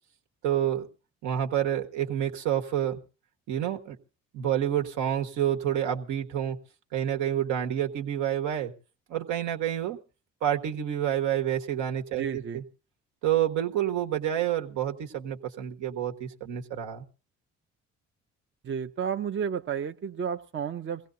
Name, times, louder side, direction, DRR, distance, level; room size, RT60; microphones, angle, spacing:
voice 1, 0.4-0.9 1.2-3.0 3.5-4.0 4.3-6.6 6.9-8.7 9.1-10.0 10.4-12.6 13.2-17.0, right 10 dB, 75° right, 3 dB, 1.5 m, -28 dB
voice 2, 12.2-12.6 18.6-21.0, right 7 dB, 40° right, 7 dB, 0.7 m, -32 dB
23.0 x 16.5 x 2.7 m, 0.35 s
supercardioid pair, 70°, 30 cm